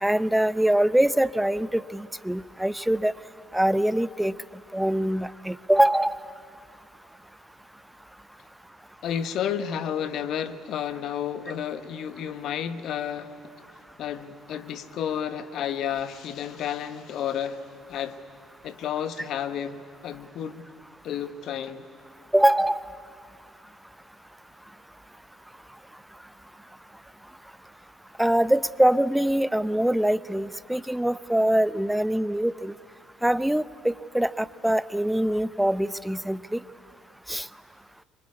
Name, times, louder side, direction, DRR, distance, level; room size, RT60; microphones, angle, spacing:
voice 1, 0.0-3.1 3.5-4.3 4.7-6.2 22.3-22.8 28.2-32.7 33.2-36.6 37.3-37.5, right 1 dB, 5° right, 16 dB, 0.7 m, -23 dB
voice 2, 9.0-13.3 14.0-18.2 18.6-20.7 21.0-21.8, left 9 dB, 60° left, 11 dB, 1.2 m, -31 dB
25.0 x 23.5 x 9.7 m, 2.4 s
hypercardioid pair, 60°, 0 cm